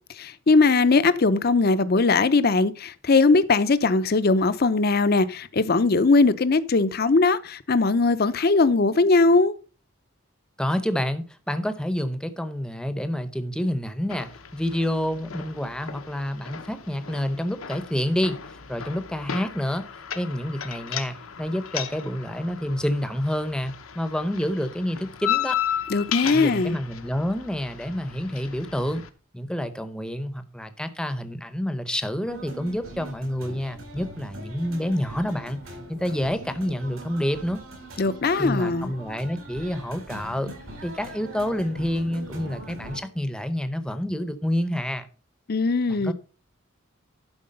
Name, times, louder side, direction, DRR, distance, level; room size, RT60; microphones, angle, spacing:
voice 1, 0.2-9.6 25.9-26.8 38.0-38.9 45.5-46.1, left 3 dB, 45° left, 0.6 m, -20 dB
voice 2, 10.6-19.9 20.1-25.6 26.2-29.0 29.3-35.6 35.9-37.6 38.4-40.5 40.8-45.1 45.9-46.1, equal, 5° left, 0.7 m, -28 dB
sound 1, 14.1-29.1, left 9 dB, 85° left, 1.0 m, -35 dB
sound 2, 32.2-43.0, right 1 dB, 80° right, 4.2 m, -42 dB
11.5 x 4.7 x 5.3 m
head